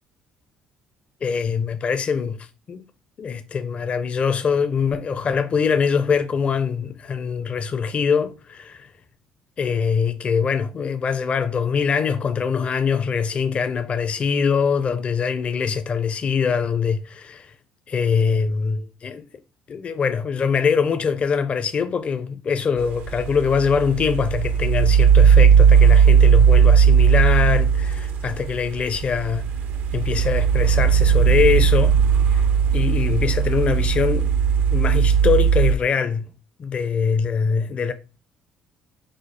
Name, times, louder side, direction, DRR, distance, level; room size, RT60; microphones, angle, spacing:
voice 1, 1.2-2.4 2.7-2.8 3.2-8.9 9.6-17.5 17.9-19.2 19.7-29.4 29.9-31.9 32.3-32.5 32.7-34.3 34.7-36.3 36.6-37.9, left 6 dB, 45° left, 0.5 m, -23 dB
sound 1, 22.8-35.7, right 7 dB, 70° right, 0.5 m, -17 dB
4.9 x 2.0 x 4.2 m
supercardioid pair, 70°, 3 cm